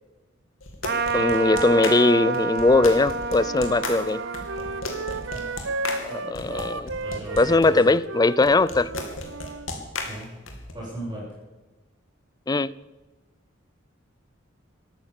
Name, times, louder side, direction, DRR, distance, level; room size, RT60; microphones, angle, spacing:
sound 1, 0.6-7.7 8.4-10.7, left 2 dB, 80° left, 2.8 m, -34 dB
Trumpet, 0.8-6.7, right 4 dB, 55° right, 1.2 m, -30 dB
voice 1, 1.1-4.2 6.0-6.9 7.4-8.9 12.5-12.8, left 2 dB, 20° left, 0.4 m, -20 dB
Wind instrument woodwind instrument, 3.3-9.7, right 3 dB, 70° right, 0.8 m, -34 dB
voice 2, 7.0-7.7 10.0-10.3 10.7-11.2, right 1 dB, 20° right, 7.3 m, -37 dB
13.5 x 13.0 x 7.5 m
head